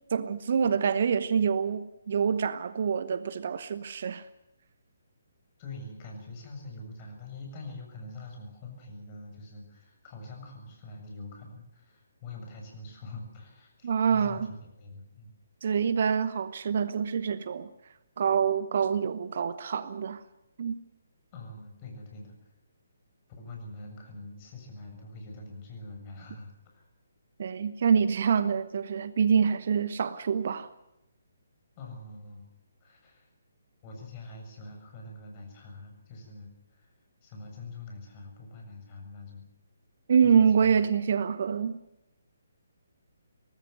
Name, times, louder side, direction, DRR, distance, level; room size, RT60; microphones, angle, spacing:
voice 1, 0.1-4.2 13.8-14.5 15.6-17.7 18.2-20.2 20.6-20.8 27.4-30.7 40.1-41.8, right 6 dB, 45° right, 1.0 m, -26 dB
voice 2, 5.6-15.4 21.3-22.5 23.4-26.9 31.8-32.5 32.8-33.3 33.8-36.9 37.2-39.5 40.2-40.7, left 2 dB, 25° left, 7.3 m, -44 dB
23.0 x 19.0 x 8.1 m
figure-of-eight pair, 135°, 0 cm